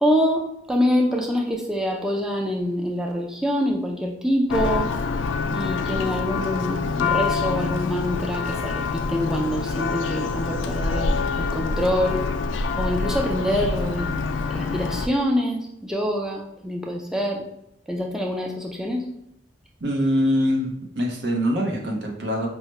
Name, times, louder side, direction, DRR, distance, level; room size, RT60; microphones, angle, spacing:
voice 1, 0.0-4.9 5.5-12.2 12.8-14.1 14.5-17.4 17.9-19.0, equal, 5° right, -1 dB, 0.3 m, -25 dB
Church bell, 4.5-15.1, left 4 dB, 90° left, 0.3 m, -26 dB
voice 2, 19.8-22.5, equal, 65° right, 1 dB, 0.7 m, -23 dB
4.6 x 2.1 x 3.1 m, 0.80 s
head